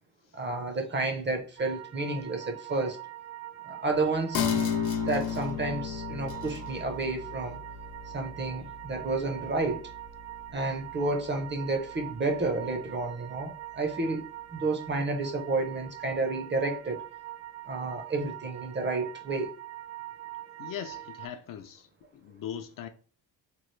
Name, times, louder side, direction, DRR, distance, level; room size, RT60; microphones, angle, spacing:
voice 1, 0.3-3.0 3.6-4.5 5.0-7.6 8.1-9.9 10.5-17.0 17.7-19.5, right 3 dB, 25° right, 0.5 m, -31 dB
sound 1, 1.6-21.3, right 15 dB, 80° right, 0.6 m, -43 dB
sound 2, 4.3-11.4 11.7-11.8, left 7 dB, 90° left, 0.8 m, -34 dB
voice 2, 20.6-21.9 22.1-22.9, left 9 dB, 50° left, 0.4 m, -39 dB
3.1 x 2.4 x 3.1 m
cardioid pair, 110°, 44 cm